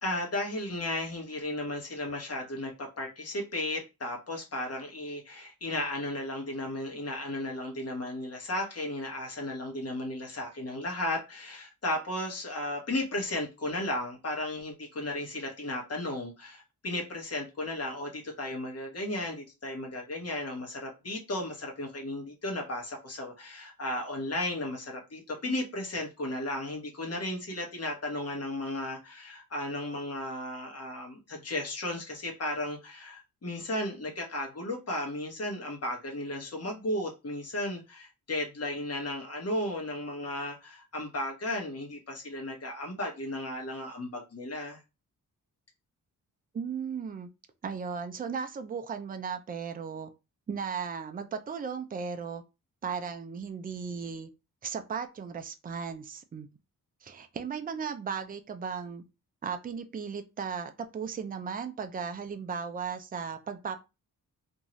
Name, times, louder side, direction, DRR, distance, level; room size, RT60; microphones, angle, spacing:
voice 1, 0.0-44.8, left 1 dB, 45° left, 1.1 m, -35 dB
voice 2, 46.5-47.3 47.6-50.1 50.5-52.4 52.8-54.3 54.6-56.5 57.0-59.0 59.4-63.8, right 6 dB, 25° right, 0.4 m, -36 dB
2.6 x 2.3 x 3.0 m
wide cardioid pair, 115°, 35 cm